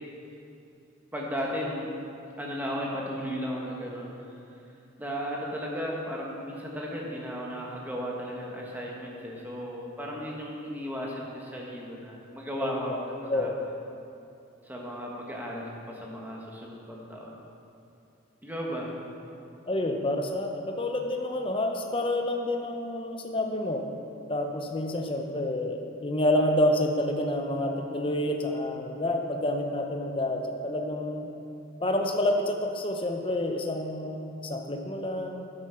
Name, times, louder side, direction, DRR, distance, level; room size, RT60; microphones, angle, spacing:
voice 1, 1.1-1.9 2.4-4.3 5.0-13.0 13.3-13.5 14.6-17.3 18.4-18.9, equal, 10° right, -3 dB, 1.4 m, -35 dB
voice 2, 12.6-13.0 13.3-13.6 19.7-23.9 24.3-31.3 31.8-35.4, left 1 dB, 25° left, 4 dB, 0.8 m, -28 dB
9.1 x 8.0 x 5.8 m, 2.6 s
head